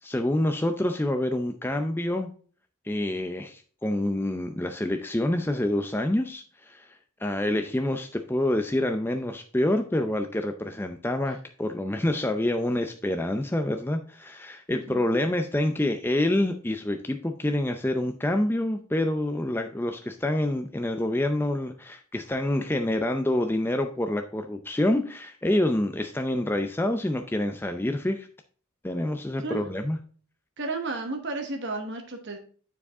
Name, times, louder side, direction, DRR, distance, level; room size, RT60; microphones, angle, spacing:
voice 1, 0.0-2.3 2.8-28.3 28.8-30.0, left 1 dB, 10° left, 6 dB, 0.4 m, -27 dB
voice 2, 14.7-15.1 29.4-29.7 30.6-32.4, right 3 dB, 50° right, 4 dB, 1.2 m, -33 dB
9.7 x 4.8 x 3.6 m, 0.43 s
head